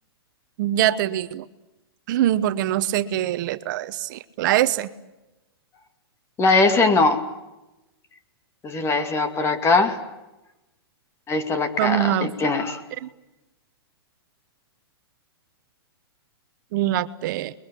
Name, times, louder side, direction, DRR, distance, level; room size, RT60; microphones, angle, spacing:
voice 1, 0.6-1.5 2.1-4.9 11.8-12.4 13.0-13.1 16.7-17.5, right 12 dB, 50° right, 12 dB, 1.0 m, -23 dB
voice 2, 6.4-7.3 8.6-10.0 11.3-12.8, left 3 dB, 20° left, 8 dB, 2.3 m, -21 dB
29.5 x 22.5 x 8.4 m, 0.99 s
hypercardioid pair, 135°, 13 cm